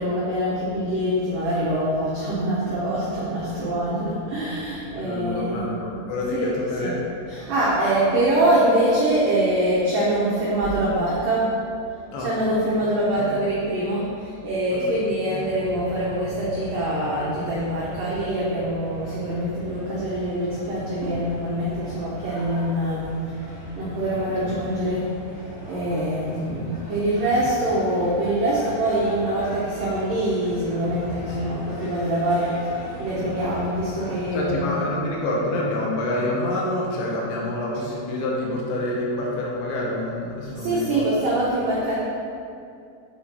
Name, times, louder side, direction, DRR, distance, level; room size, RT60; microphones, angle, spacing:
voice 1, 0.0-5.7 6.3-7.0 7.3-11.5 12.2-23.1 23.4-25.1 25.7-34.8 40.5-41.9, right 1 dB, 90° right, -7 dB, 1.9 m, -24 dB
voice 2, 4.9-7.0 12.1-12.3 13.2-13.3 14.7-14.8 15.2-15.3 24.5-24.6 26.0-26.2 34.3-41.1, left 1 dB, 75° left, -3 dB, 3.2 m, -27 dB
sound 1, 15.3-34.5, equal, 60° left, 2.2 m, -39 dB
8.9 x 4.2 x 4.4 m, 2.5 s
omnidirectional pair, 5.5 m